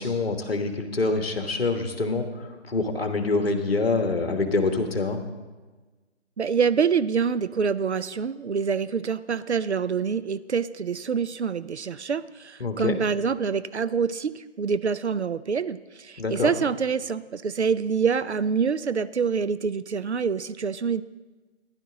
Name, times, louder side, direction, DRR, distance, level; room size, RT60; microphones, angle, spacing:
voice 1, 0.0-5.2 12.6-13.0 16.2-16.5, left 3 dB, 55° left, 6 dB, 1.4 m, -26 dB
voice 2, 6.4-21.0, right 6 dB, 65° right, 14 dB, 0.5 m, -26 dB
15.0 x 11.0 x 3.8 m, 1.3 s
figure-of-eight pair, 150°, 36 cm